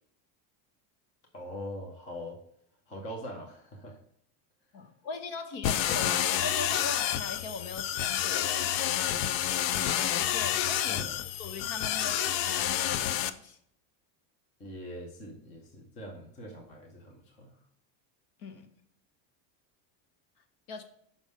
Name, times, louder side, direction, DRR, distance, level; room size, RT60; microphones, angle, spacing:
voice 1, 1.3-2.4 2.9-4.0 10.9-11.2 14.6-17.6, equal, 15° left, 0 dB, 0.5 m, -42 dB
voice 2, 4.7-8.7 10.3-11.0 11.4-13.6 18.4-18.7 20.7-20.8, left 4 dB, 45° left, 6 dB, 1.0 m, -40 dB
sound 1, 5.6-13.3, left 11 dB, 90° left, 0.7 m, -29 dB
6.4 x 5.3 x 3.5 m, 0.70 s
cardioid pair, 180°, 50 cm